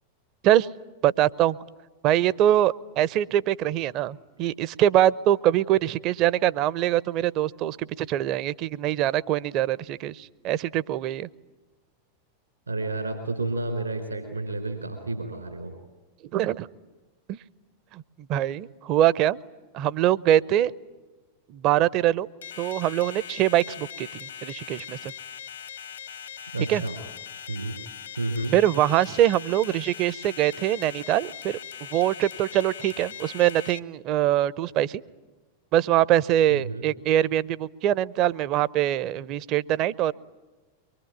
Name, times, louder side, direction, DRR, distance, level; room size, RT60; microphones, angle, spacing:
voice 1, 1.0-1.6 2.0-11.3 16.3-16.7 17.3-17.4 17.9-18.0 18.3-19.4 19.7-20.7 21.5-22.3 22.6-25.1 26.7-26.8 28.5-31.6 31.9-35.0 35.7-40.1, right 12 dB, 40° right, 19 dB, 0.8 m, -23 dB
voice 2, 12.7-15.7 26.5-27.0 27.5-27.8 28.2-28.5 36.5-36.9, right 2 dB, 80° right, 5 dB, 4.0 m, -30 dB
sound 1, 22.4-33.8, left 8 dB, 70° left, 1.4 m, -40 dB
24.5 x 23.0 x 9.4 m, 1.2 s
figure-of-eight pair, 90°, 0 cm